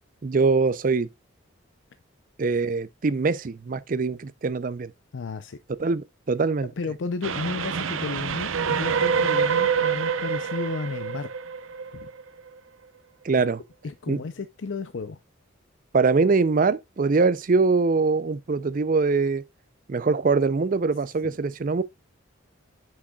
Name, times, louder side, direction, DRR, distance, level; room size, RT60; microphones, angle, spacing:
voice 1, 0.2-1.1 2.4-4.9 5.8-6.7 13.2-13.6 14.1-14.2 15.9-19.4 19.9-21.8, right 4 dB, 45° right, 0.5 m, -23 dB
voice 2, 5.1-5.6 6.8-11.3 11.9-12.1 13.4-13.5 13.8-15.2 21.2-21.3, left 4 dB, 65° left, 0.5 m, -33 dB
Train, 7.2-12.5, right 6 dB, 85° right, 0.7 m, -26 dB
9.7 x 6.4 x 2.3 m
head